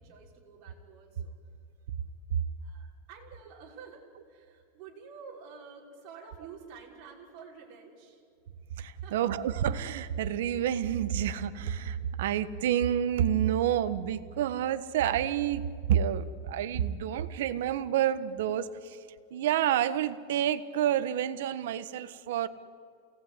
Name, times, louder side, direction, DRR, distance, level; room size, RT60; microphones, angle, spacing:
voice 1, 0.0-1.3 2.6-8.2 9.0-9.2, right 6 dB, 40° right, -2 dB, 5.7 m, -49 dB
voice 2, 8.8-19.0 19.3-22.5, right 10 dB, 75° right, 13 dB, 1.4 m, -29 dB
28.5 x 18.0 x 9.7 m, 2.4 s
supercardioid pair, 160°, 0 cm